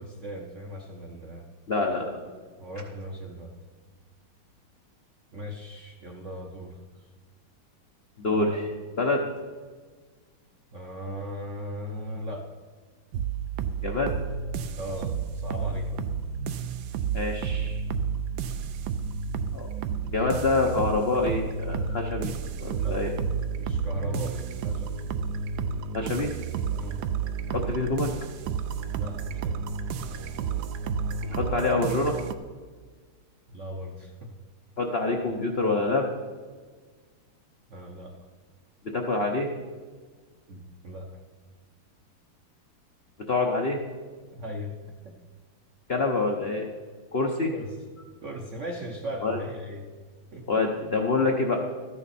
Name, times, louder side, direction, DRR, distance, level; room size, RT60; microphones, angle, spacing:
voice 1, 0.0-1.4 2.6-3.5 5.3-6.8 8.3-8.6 10.7-12.5 14.8-16.0 22.7-23.0 23.6-24.9 26.8-27.1 28.9-29.6 33.5-34.3 37.7-38.1 40.5-41.1 44.3-44.8 47.5-47.7 48.2-49.9 50.3-50.5, equal, 55° right, 1 dB, 0.8 m, -37 dB
voice 2, 1.7-2.2 8.2-8.6 9.0-9.2 13.8-14.1 17.1-17.8 19.5-19.7 20.1-22.3 22.6-23.1 25.9-26.3 27.5-28.1 31.3-32.2 34.8-36.1 38.9-39.5 43.3-43.8 45.9-46.7 47.1-47.5 49.2-49.4 50.5-51.6, left 3 dB, 60° left, 1 dB, 0.6 m, -26 dB
sound 1, 13.1-32.3, right 6 dB, 85° right, 0.9 m, -31 dB
13.5 x 9.8 x 4.2 m, 1.5 s
omnidirectional pair, 2.3 m